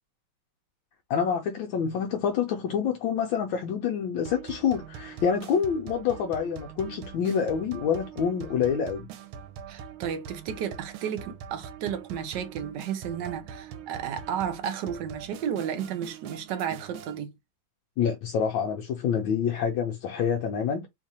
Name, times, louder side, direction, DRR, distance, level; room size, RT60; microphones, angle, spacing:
voice 1, 1.1-9.1 18.0-20.9, left 7 dB, 75° left, 1.4 m, -27 dB
sound 1, 4.2-17.2, right 8 dB, 85° right, 1.5 m, -43 dB
voice 2, 9.7-17.3, right 8 dB, 70° right, 1.1 m, -33 dB
3.6 x 2.5 x 4.1 m
omnidirectional pair, 2.2 m